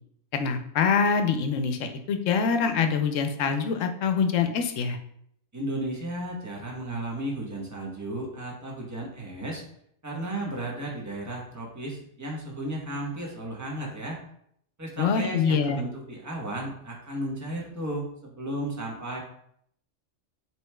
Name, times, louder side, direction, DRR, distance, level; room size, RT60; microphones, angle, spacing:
voice 1, 0.3-5.0 15.0-15.8, left 6 dB, 85° left, 7 dB, 1.0 m, -25 dB
voice 2, 5.5-9.6 10.0-14.2 14.8-19.2, right 1 dB, 15° right, -2 dB, 0.9 m, -34 dB
7.6 x 3.0 x 2.2 m, 0.69 s
omnidirectional pair, 1.3 m